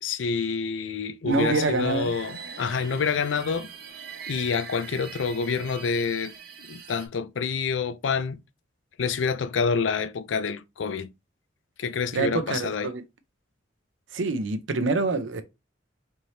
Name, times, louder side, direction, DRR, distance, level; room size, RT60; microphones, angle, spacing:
voice 1, 0.0-3.7 4.3-6.3 6.6-8.4 9.0-11.1 11.8-12.9, left 5 dB, 80° left, 0.4 m, -27 dB
voice 2, 1.2-2.1 12.1-13.0 14.1-15.4, right 3 dB, 90° right, 0.7 m, -26 dB
sound 1, 1.3-7.1, right 4 dB, 55° right, 0.9 m, -39 dB
4.5 x 3.2 x 2.7 m
head